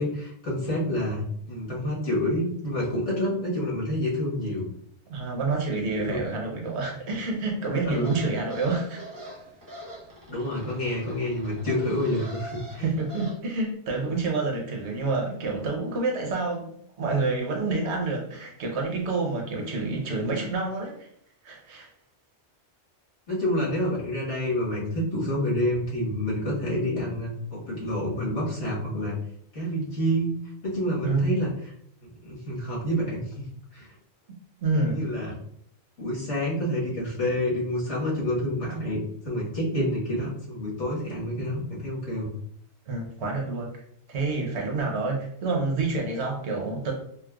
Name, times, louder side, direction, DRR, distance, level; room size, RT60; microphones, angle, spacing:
voice 1, 0.0-4.7 6.1-6.2 7.8-8.1 10.3-12.9 23.3-29.2 29.5-31.5 32.2-33.4 33.7-33.9 34.8-35.3 36.0-42.3, left 1 dB, 85° left, -6 dB, 1.7 m, -28 dB
voice 2, 5.1-9.0 12.8-16.7 17.0-21.1 21.4-21.9 31.0-31.4 34.6-35.1 39.7-39.9 42.9-43.7 44.1-46.9, right 3 dB, 75° right, 0 dB, 1.1 m, -28 dB
sound 1, 7.9-13.4, equal, 20° right, 0.7 m, -42 dB
4.4 x 2.1 x 2.3 m, 0.67 s
omnidirectional pair, 1.2 m